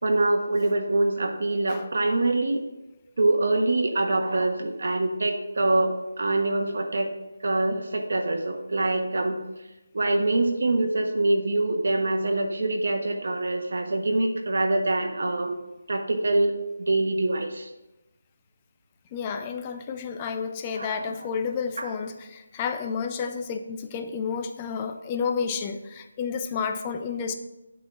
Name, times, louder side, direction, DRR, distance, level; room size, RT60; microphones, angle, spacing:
voice 1, 0.0-2.6 3.2-7.1 7.4-9.4 9.9-15.6 15.9-17.7 20.7-21.1 21.8-21.9, right 2 dB, 60° right, 4 dB, 1.2 m, -25 dB
voice 2, 19.1-27.3, left 6 dB, 15° left, 7 dB, 0.4 m, -31 dB
8.6 x 3.9 x 5.9 m, 1.0 s
figure-of-eight pair, 170°, 0 cm